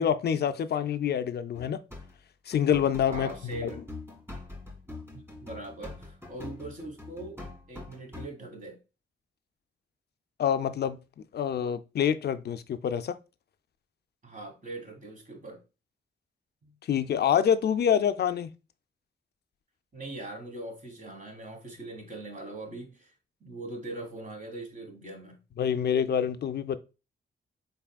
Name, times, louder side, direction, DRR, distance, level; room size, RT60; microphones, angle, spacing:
voice 1, 0.0-1.8 2.5-3.3 3.6-3.7 10.4-11.0 11.3-13.1 16.9-18.5 25.6-26.8, left 8 dB, 55° left, 0.4 m, -26 dB
sound 1, 1.5-2.2 2.5-8.3, left 3 dB, 10° right, 1.9 m, -44 dB
voice 2, 3.1-3.8 5.1-7.4 7.7-8.8 14.2-15.6 16.6-16.7 19.9-23.1 23.4-25.4, right 2 dB, 40° right, 1.2 m, -41 dB
4.1 x 3.5 x 2.2 m
cardioid pair, 75°, 20 cm